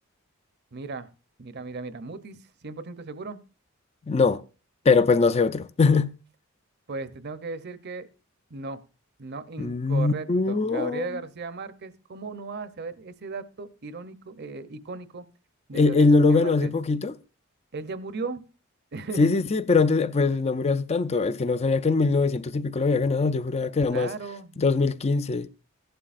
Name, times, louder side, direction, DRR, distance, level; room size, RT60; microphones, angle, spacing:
voice 1, 0.7-1.1 1.4-3.4 6.9-8.1 8.5-8.8 9.2-15.2 15.7-16.7 17.7-18.4 18.9-19.3 23.9-24.6, right 3 dB, 55° right, 0.7 m, -36 dB
voice 2, 4.1-4.4 4.9-6.1 9.6-11.0 15.7-17.1 19.2-24.1 24.6-25.5, left 4 dB, 30° left, 0.4 m, -22 dB
16.0 x 11.5 x 2.5 m
head